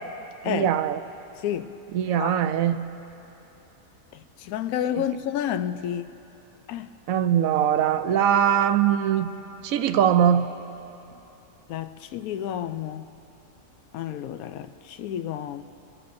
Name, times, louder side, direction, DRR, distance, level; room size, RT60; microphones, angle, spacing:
voice 1, 0.4-1.0 1.9-2.8 7.1-9.3 9.6-10.5, right 9 dB, 75° right, 10 dB, 1.0 m, -21 dB
voice 2, 4.1-6.1 6.7-6.9 11.7-13.1 13.9-15.6, left 10 dB, 90° left, 10 dB, 1.0 m, -30 dB
29.0 x 13.5 x 2.6 m, 3.0 s
omnidirectional pair, 1.5 m